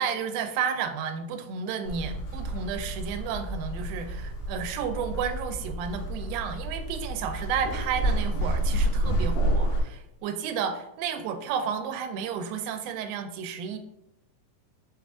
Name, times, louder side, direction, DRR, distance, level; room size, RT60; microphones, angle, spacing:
voice 1, 0.0-13.8, right 7 dB, 90° right, 7 dB, 2.3 m, -32 dB
sound 1, 1.8-9.8, right 1 dB, 80° left, 2.4 m, -29 dB
6.2 x 2.4 x 3.5 m, 0.87 s
omnidirectional pair, 4.1 m